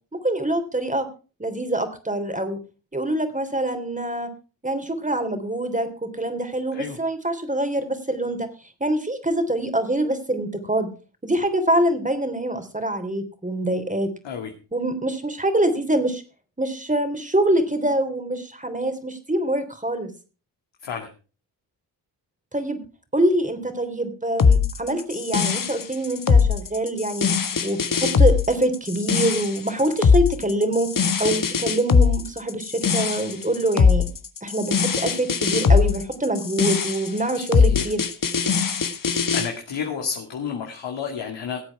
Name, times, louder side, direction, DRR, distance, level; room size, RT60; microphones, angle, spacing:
voice 1, 0.2-1.1 1.4-2.6 2.9-4.3 4.6-8.5 8.8-10.9 11.2-14.1 14.7-16.2 16.6-20.1 22.5-22.8 23.1-27.3 27.6-30.9 31.2-34.0 34.4-38.0, right 1 dB, 15° right, 9 dB, 3.4 m, -25 dB
sound 1, 24.4-39.5, left 5 dB, 45° left, 1.5 m, -20 dB
voice 2, 37.4-37.8 39.0-41.6, left 6 dB, 65° left, 2 dB, 2.4 m, -31 dB
18.0 x 7.9 x 4.7 m, 0.35 s
supercardioid pair, 45°, 47 cm